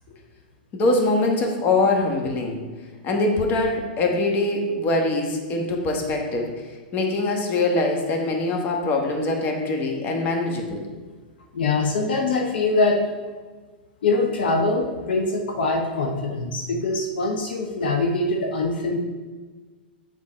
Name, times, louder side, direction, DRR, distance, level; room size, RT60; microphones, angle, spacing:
voice 1, 0.7-2.6 3.0-6.5 6.9-10.8, left 2 dB, 35° left, 1 dB, 1.3 m, -23 dB
voice 2, 11.5-13.0 14.0-19.0, left 3 dB, 70° left, 1 dB, 0.9 m, -23 dB
7.4 x 3.9 x 4.2 m, 1.4 s
hypercardioid pair, 115°, 5 cm